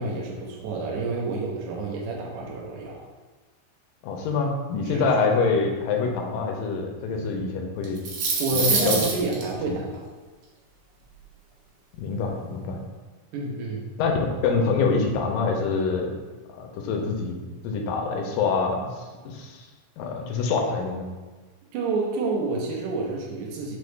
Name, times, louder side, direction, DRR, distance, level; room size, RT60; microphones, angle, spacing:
voice 1, 0.0-3.0 4.8-5.1 8.4-10.0 13.3-13.8 21.7-23.8, right 3 dB, 90° right, -3 dB, 1.7 m, -29 dB
voice 2, 4.0-8.0 8.5-9.0 9.7-9.8 12.0-12.8 14.0-14.1 14.4-16.1 16.5-17.4 17.6-19.7 20.0-21.1, left 4 dB, 80° left, 2 dB, 2.1 m, -25 dB
sound 1, 7.8-9.4, right 4 dB, 75° right, 2.2 m, -25 dB
5.8 x 2.1 x 3.2 m, 1.3 s
omnidirectional pair, 4.2 m